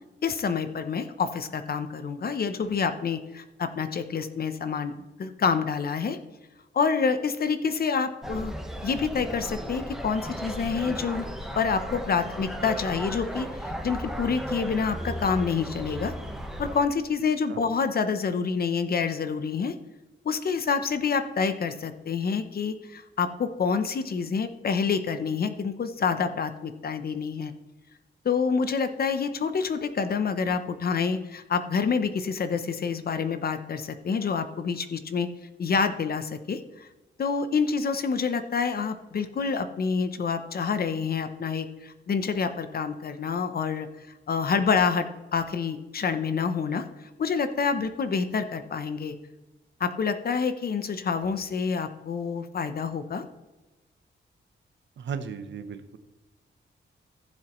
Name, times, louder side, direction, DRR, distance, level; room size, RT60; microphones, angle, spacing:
voice 1, 0.2-4.9 5.2-6.2 6.7-8.5 8.8-11.3 11.6-16.1 16.6-19.7 20.2-27.5 28.2-35.3 35.6-36.9 37.2-43.9 44.3-45.1 45.3-46.8 47.2-49.1 49.8-53.2, left 5 dB, 50° left, 10 dB, 0.7 m, -27 dB
sound 1, 8.2-16.8, equal, ahead, 1.1 m, -35 dB
voice 2, 55.0-56.0, right 6 dB, 70° right, 9 dB, 0.9 m, -35 dB
15.0 x 7.6 x 3.1 m, 1.2 s
wide cardioid pair, 130°, 20 cm